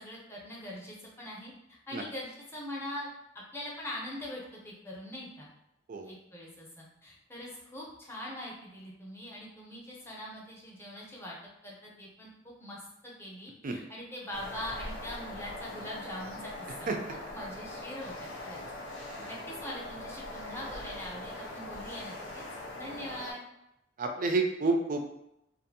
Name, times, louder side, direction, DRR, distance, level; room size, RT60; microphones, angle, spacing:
voice 1, 0.0-1.5 1.9-5.5 6.0-11.4 11.6-16.5 16.8-16.9 17.3-18.6 19.3-22.4 22.8-23.4, left 1 dB, 15° left, -4 dB, 0.7 m, -42 dB
sound 1, 14.3-23.3, left 1 dB, 85° left, 0.7 m, -42 dB
voice 2, 24.0-25.0, right 3 dB, 45° right, 4 dB, 0.4 m, -29 dB
2.6 x 2.5 x 2.6 m, 0.84 s
head